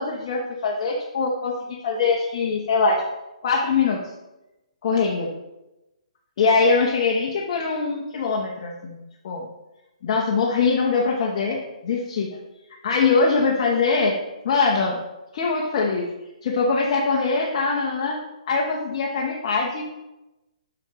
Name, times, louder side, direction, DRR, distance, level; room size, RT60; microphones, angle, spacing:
voice 1, 0.0-1.5 1.8-3.0 3.4-4.0 4.8-5.3 6.4-9.4 10.0-12.4 12.8-14.1 14.4-15.0 15.3-16.0 16.4-18.2 18.5-19.9, left 4 dB, 50° left, -1 dB, 1.1 m, -22 dB
8.2 x 6.1 x 3.2 m, 0.99 s
hypercardioid pair, 145°, 4 cm